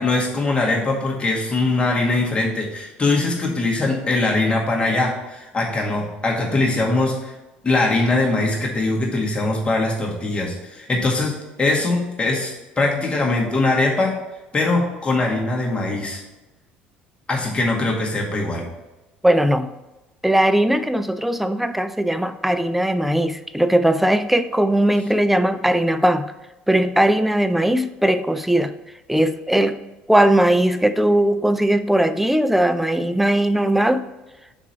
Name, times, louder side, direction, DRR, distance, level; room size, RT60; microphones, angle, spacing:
voice 1, 0.0-7.3 7.6-14.1 14.5-16.2 17.3-18.7, left 2 dB, 20° left, -2 dB, 1.9 m, -21 dB
voice 2, 19.2-19.7 20.2-26.3 26.7-28.7 29.1-29.8 30.1-34.1, right 1 dB, 5° right, 11 dB, 0.5 m, -19 dB
6.0 x 4.3 x 5.8 m, 1.1 s
figure-of-eight pair, 60°, 5 cm